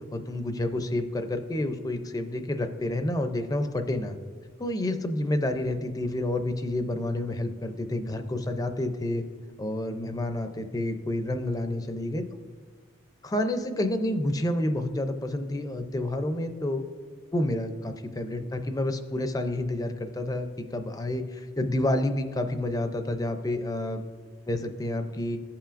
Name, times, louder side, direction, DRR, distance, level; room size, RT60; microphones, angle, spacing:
voice 1, 0.1-4.2 4.6-9.2 9.6-12.2 13.2-16.8 17.3-24.0 24.5-25.4, left 1 dB, 15° left, 7 dB, 0.4 m, -29 dB
15.5 x 5.7 x 2.5 m, 1.5 s
head